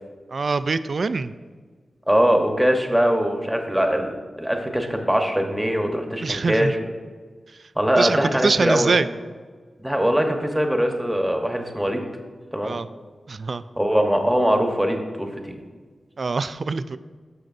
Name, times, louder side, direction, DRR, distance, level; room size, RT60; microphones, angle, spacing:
voice 1, 0.3-1.3 6.2-6.7 8.0-9.1 12.6-12.9 13.3-13.6 16.2-17.0, right 4 dB, 55° right, 13 dB, 0.3 m, -24 dB
voice 2, 2.1-6.9 7.8-8.9 9.8-12.0 12.5-12.7 13.8-15.6, equal, 5° right, 3 dB, 1.1 m, -22 dB
13.5 x 6.3 x 2.6 m, 1.5 s
wide cardioid pair, 95°, 0 cm